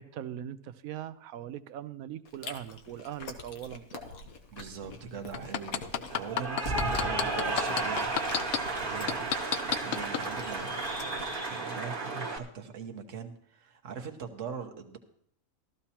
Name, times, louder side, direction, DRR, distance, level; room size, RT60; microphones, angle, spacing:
voice 1, 0.0-4.0 9.1-9.3, right 10 dB, 85° right, 13 dB, 1.1 m, -41 dB
Chewing mastication, 2.3-11.5, left 3 dB, 85° left, 1.5 m, -46 dB
voice 2, 4.5-8.1 8.7-9.2 9.4-15.0, right 6 dB, 65° right, 4 dB, 1.5 m, -42 dB
sound 1, 5.3-8.6 9.1-10.2 10.7-10.8, left 9 dB, 60° left, 0.6 m, -29 dB
Cheering / Applause, 6.1-12.4, right 3 dB, 40° right, 1.4 m, -33 dB
15.0 x 13.5 x 2.9 m, 0.70 s
omnidirectional pair, 1.4 m